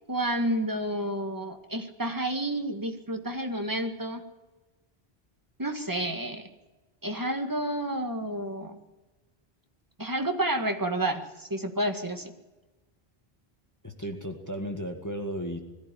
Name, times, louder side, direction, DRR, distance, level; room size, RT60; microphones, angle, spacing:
voice 1, 0.1-4.2 5.6-6.5 7.0-8.8 10.0-12.3, right 1 dB, 20° right, 5 dB, 1.9 m, -30 dB
voice 2, 13.8-15.6, equal, 15° left, 4 dB, 1.9 m, -34 dB
21.0 x 14.5 x 10.0 m, 1.2 s
omnidirectional pair, 1.0 m